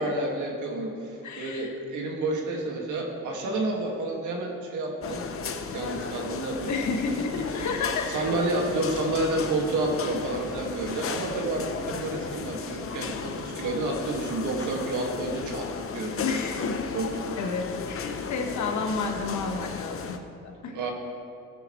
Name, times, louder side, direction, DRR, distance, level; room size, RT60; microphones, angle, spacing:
voice 1, 0.0-5.3 5.7-6.9 7.5-7.7 8.1-16.4 16.9-17.3 20.7-20.9, right 2 dB, 75° right, 0 dB, 2.0 m, -30 dB
voice 2, 1.2-1.7 6.7-8.3 16.2-17.0 17.4-20.2 20.4-20.7, left 4 dB, 70° left, 3 dB, 1.5 m, -31 dB
sound 1, 5.0-20.2, left 5 dB, 45° left, 0.8 m, -35 dB
14.5 x 10.5 x 3.2 m, 2.4 s
cardioid pair, 90°, 30 cm